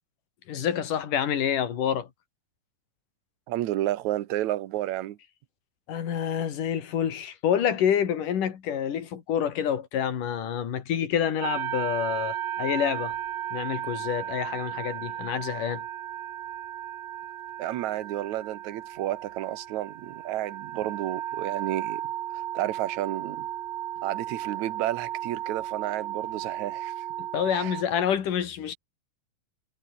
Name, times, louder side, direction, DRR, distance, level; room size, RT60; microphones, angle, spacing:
voice 1, 0.5-2.1 5.9-13.2 13.5-15.8 27.3-28.8, left 9 dB, 75° left, 4.0 m, -27 dB
voice 2, 3.5-5.2 17.6-22.0 22.5-23.5 24.0-27.1 27.5-27.7, right 14 dB, 65° right, 2.3 m, -31 dB
sound 1, 11.4-27.8, right 12 dB, 80° right, 3.2 m, -35 dB
omnidirectional pair, 3.8 m